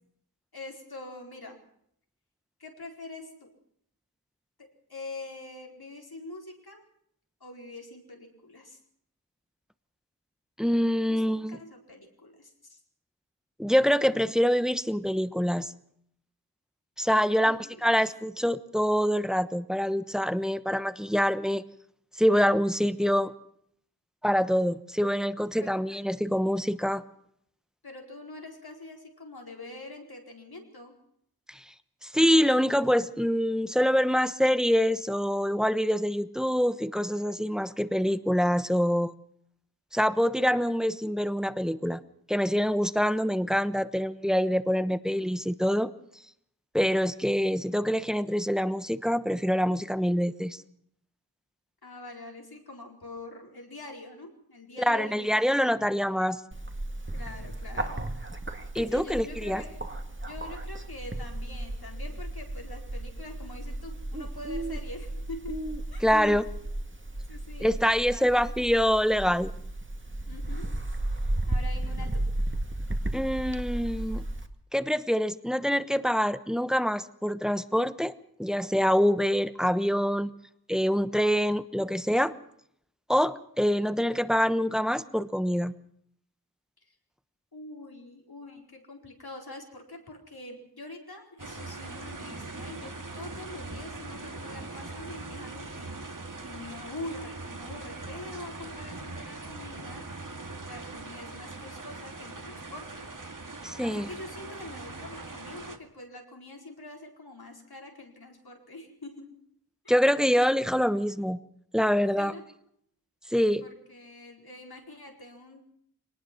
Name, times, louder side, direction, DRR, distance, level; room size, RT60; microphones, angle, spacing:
voice 1, 0.5-1.6 2.6-3.5 4.6-6.8 7.4-8.8 11.1-11.2 11.5-12.8 17.1-18.0 25.6-25.8 27.8-31.0 51.8-55.5 57.1-58.1 58.7-59.9 60.2-66.1 67.3-68.5 70.3-70.8 71.5-72.3 86.8-87.0 87.5-100.1 100.7-103.5 103.8-109.4 109.8-109.9 112.2-112.4 113.6-115.6, left 2 dB, 85° left, 1 dB, 4.5 m, -44 dB
voice 2, 10.6-11.6 13.6-15.7 17.0-21.6 22.2-23.3 24.2-27.0 31.5-31.6 32.0-39.1 39.9-42.0 42.3-45.9 46.7-50.6 54.8-56.4 58.7-59.6 66.0-66.5 67.6-69.5 73.1-74.2 74.7-78.1 78.4-80.3 80.7-82.3 83.1-85.7 103.6-104.1 109.9-111.4 111.7-112.3 113.3-113.6, equal, ahead, 13 dB, 1.1 m, -25 dB
Bird, 56.5-74.5, right 1 dB, 30° right, 2.0 m, -34 dB
sound 1, 91.4-105.8, right 3 dB, 60° right, 2.1 m, -41 dB
23.0 x 19.0 x 6.1 m, 0.69 s
wide cardioid pair, 50°, 36 cm